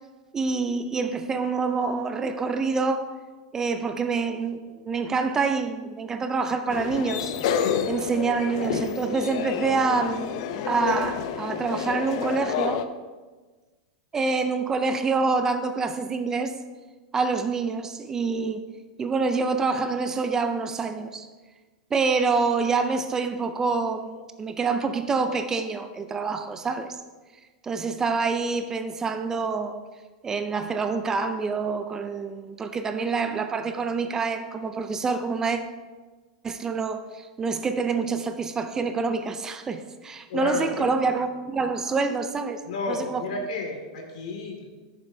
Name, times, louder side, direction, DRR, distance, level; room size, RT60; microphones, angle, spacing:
voice 1, 0.3-3.1 3.5-4.6 4.8-7.3 7.9-10.3 10.7-12.9 14.1-16.5 17.1-18.6 19.0-21.3 21.9-27.0 27.6-29.8 30.2-35.6 36.4-42.6 42.9-43.2, right 4 dB, 15° right, 0.4 m, -26 dB
sound 1, 6.7-12.8, left 8 dB, 55° left, 0.6 m, -29 dB
voice 2, 40.3-41.2 42.6-44.7, left 3 dB, 75° left, 2.1 m, -32 dB
13.0 x 7.0 x 2.7 m
supercardioid pair, 155°, 4 cm